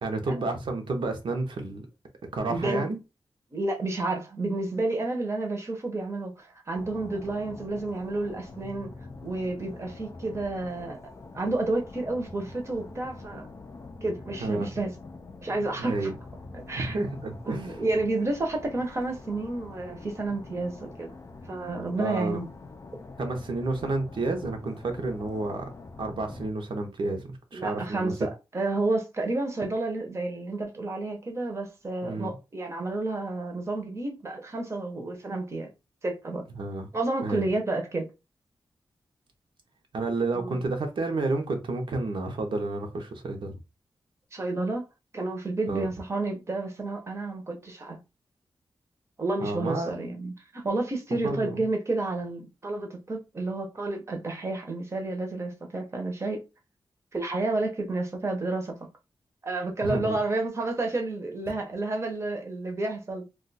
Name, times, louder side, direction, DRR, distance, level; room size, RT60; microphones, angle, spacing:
voice 1, 0.0-1.8 2.3-3.0 14.4-14.7 15.8-16.1 16.7-17.8 22.0-22.4 23.2-25.6 26.0-28.1 32.0-32.4 36.6-36.9 37.2-37.5 39.9-43.5 45.7-45.9 49.4-49.9 51.1-51.5 59.8-60.2, right 2 dB, 65° right, 0.7 m, -30 dB
voice 2, 2.5-2.9 3.5-8.9 9.2-11.0 11.3-13.5 14.0-14.9 15.4-16.1 16.5-17.0 17.5-21.1 21.5-22.5 27.5-35.7 36.0-36.4 36.9-38.1 40.3-40.6 44.3-44.8 45.1-48.0 49.2-56.4 57.1-58.8 59.4-63.2, right 2 dB, 30° right, 0.7 m, -30 dB
sound 1, 6.8-26.5, left 3 dB, 35° left, 0.4 m, -45 dB
2.4 x 2.3 x 3.9 m
wide cardioid pair, 160°, 9 cm